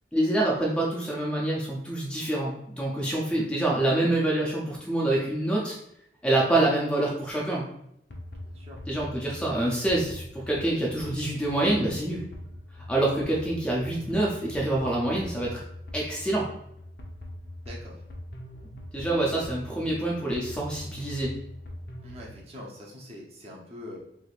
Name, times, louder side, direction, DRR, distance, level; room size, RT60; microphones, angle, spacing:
voice 1, 0.1-5.8 6.2-7.6 8.9-12.2 12.9-15.6 15.9-16.5 18.9-21.3, right 1 dB, 5° left, -4 dB, 0.4 m, -26 dB
sound 1, 8.1-22.3, left 1 dB, 60° left, 0.6 m, -42 dB
voice 2, 8.4-8.8 17.7-18.0 22.0-24.0, left 1 dB, 35° right, -3 dB, 0.7 m, -43 dB
3.2 x 3.1 x 2.4 m, 0.76 s
head